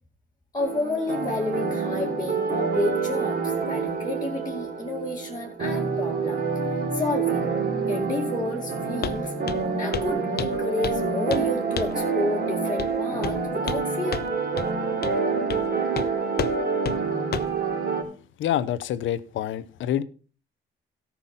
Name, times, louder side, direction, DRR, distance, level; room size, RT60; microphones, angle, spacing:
voice 1, 0.5-6.4 6.9-7.4 7.9-9.3 9.8-14.3, left 2 dB, 20° left, -3 dB, 2.2 m, -30 dB
sound 1, 0.6-18.0, right 5 dB, 55° right, 3.6 m, -27 dB
Walk footsteps, 9.0-9.2 9.5-9.7 9.9-10.1 10.4-11.0 11.3-11.5 11.8-12.0 12.8-13.0 13.2-13.8 14.1-14.3 14.6-14.7 15.0-15.2 15.5-15.7 16.0-16.1 16.4-16.6 16.9-17.0 17.3-17.6, left 8 dB, 50° left, 0.8 m, -31 dB
voice 2, 18.4-20.0, left 11 dB, 75° left, 16 dB, 0.9 m, -27 dB
13.5 x 5.9 x 5.7 m, 0.39 s
cardioid pair, 90°, 20 cm